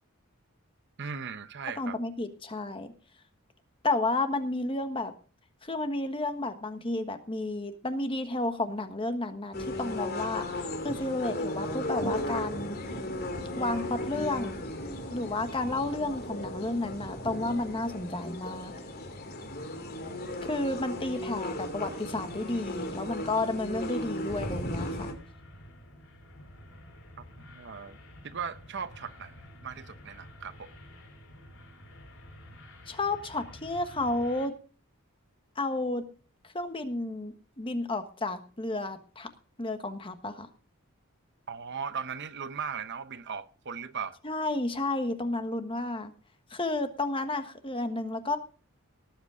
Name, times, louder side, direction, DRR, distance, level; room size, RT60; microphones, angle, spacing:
voice 1, 1.0-2.0 27.5-28.0 28.2-29.4 29.6-30.7 41.5-44.2, right 6 dB, 55° right, 0.8 m, -38 dB
voice 2, 1.8-2.9 3.8-5.1 5.6-10.5 10.8-12.8 13.5-14.7 15.1-18.7 20.4-25.1 32.9-34.5 35.6-36.1 36.4-39.3 39.6-40.5 44.2-46.1 46.5-48.4, left 2 dB, 25° left, 1.3 m, -32 dB
sound 1, 9.5-25.1, left 1 dB, 45° left, 2.9 m, -36 dB
sound 2, 24.9-34.5, left 1 dB, 65° left, 3.7 m, -50 dB
18.5 x 8.1 x 5.0 m
head